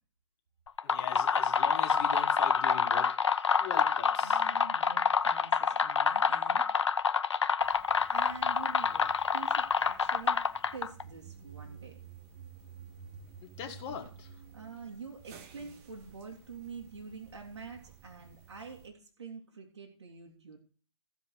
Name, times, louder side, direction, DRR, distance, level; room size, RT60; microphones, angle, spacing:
sound 1, 0.7-11.0, left 6 dB, 85° left, 0.8 m, -27 dB
voice 1, 0.8-3.1 3.6-4.4 13.4-14.3, left 7 dB, 30° left, 2 dB, 2.3 m, -41 dB
voice 2, 4.2-6.6 8.1-10.4 10.7-12.0 14.5-20.6, right 5 dB, 70° right, 0 dB, 3.0 m, -46 dB
sound 2, 7.6-18.9, right 6 dB, 30° right, 1.5 m, -53 dB
15.5 x 5.2 x 6.4 m, 0.41 s
hypercardioid pair, 140°, 15 cm